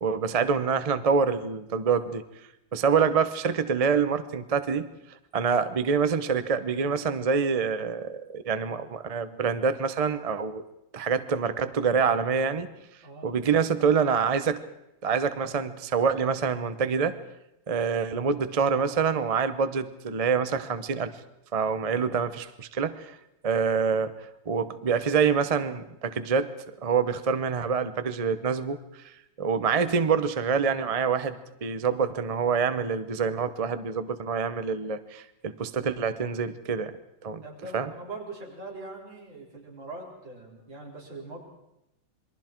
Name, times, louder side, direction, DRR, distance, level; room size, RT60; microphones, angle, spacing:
voice 1, 0.0-2.2 2.7-4.9 5.3-10.6 10.9-12.7 13.2-14.6 15.0-17.2 17.7-21.1 21.5-23.2 23.4-24.1 24.5-26.5 26.8-28.8 29.0-29.1 29.4-36.9 37.2-37.4 37.7-37.9, right 6 dB, 45° right, 11 dB, 0.4 m, -26 dB
voice 2, 37.4-41.4, right 2 dB, 70° right, -2 dB, 5.1 m, -41 dB
27.5 x 22.0 x 4.6 m, 0.87 s
omnidirectional pair, 2.1 m